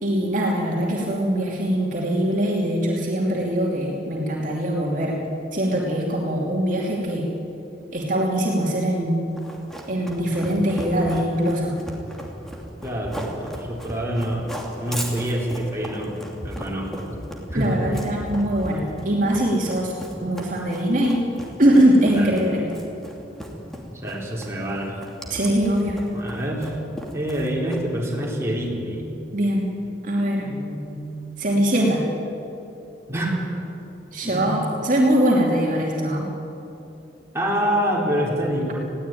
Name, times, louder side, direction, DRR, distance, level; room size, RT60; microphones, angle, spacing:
voice 1, 0.0-5.2 5.5-7.3 7.9-9.3 9.9-11.7 17.5-19.9 20.2-21.2 21.6-22.7 25.3-26.0 29.3-29.7 30.0-30.5 31.4-32.0 34.1-36.3, right 1 dB, 50° right, -2 dB, 2.8 m, -22 dB
Run, 9.4-28.0, equal, ahead, 2.7 m, -36 dB
voice 2, 12.8-14.5 14.8-16.2 16.4-17.1 17.5-17.7 22.2-22.3 23.9-24.9 26.1-26.7 27.1-29.0 30.4-31.2 33.1-33.6 34.2-34.5 37.3-38.7, equal, 15° right, -4 dB, 4.1 m, -26 dB
21.0 x 16.5 x 9.3 m, 2.9 s
head